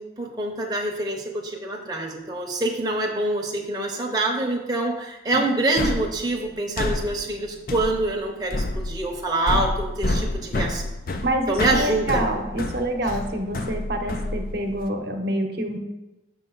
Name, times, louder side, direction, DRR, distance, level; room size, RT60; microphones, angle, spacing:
voice 1, 0.0-10.9 11.5-12.2, right 2 dB, 20° right, -1 dB, 0.8 m, -26 dB
sound 1, 5.8-14.9, left 2 dB, 50° left, 0.5 m, -29 dB
voice 2, 11.2-15.8, right 1 dB, 60° right, 3 dB, 0.9 m, -27 dB
7.4 x 5.3 x 3.8 m, 1.0 s
head